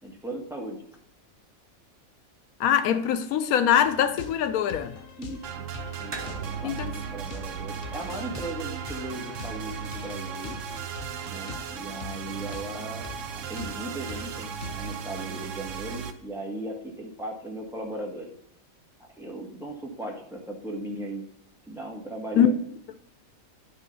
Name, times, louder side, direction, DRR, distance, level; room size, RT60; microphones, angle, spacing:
voice 1, 0.0-0.9 5.2-5.7 6.0-10.6 11.3-13.1 13.3-18.3 19.2-21.2 21.7-22.6, right 1 dB, ahead, 1.6 m, -37 dB
voice 2, 2.6-5.0 6.6-7.0 22.3-22.5, left 9 dB, 85° left, 1.1 m, -23 dB
sound 1, 3.7-15.0, left 6 dB, 50° left, 0.9 m, -44 dB
sound 2, 5.4-16.1, right 8 dB, 70° right, 0.9 m, -37 dB
sound 3, 6.1-10.9, right 6 dB, 40° right, 0.4 m, -42 dB
9.7 x 3.3 x 5.5 m
omnidirectional pair, 1.5 m